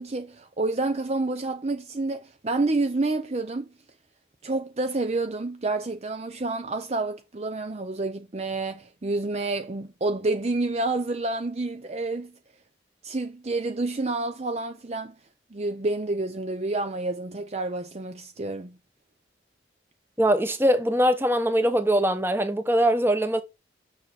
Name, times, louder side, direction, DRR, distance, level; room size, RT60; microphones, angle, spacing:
voice 1, 0.0-3.7 4.4-12.3 13.0-15.1 15.5-18.8, right 2 dB, 35° right, 0.6 m, -29 dB
voice 2, 20.2-23.4, equal, 10° right, 1.0 m, -22 dB
6.6 x 6.6 x 4.1 m
head